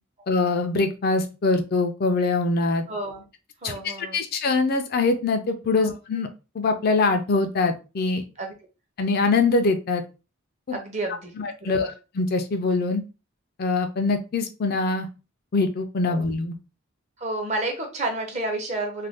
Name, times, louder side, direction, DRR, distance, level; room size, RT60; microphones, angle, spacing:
voice 1, 0.3-2.8 3.6-6.3 6.6-8.2 9.0-10.0 10.7-10.8 11.4-13.0 13.6-15.1 15.5-16.6, left 3 dB, 50° left, 6 dB, 0.4 m, -23 dB
voice 2, 2.9-3.2 3.6-4.2 5.8-6.0 8.4-8.5 10.7-11.3 11.6-11.8 16.1-16.2 17.2-19.1, right 2 dB, 35° right, 3 dB, 0.7 m, -30 dB
2.5 x 2.2 x 3.4 m, 0.31 s
head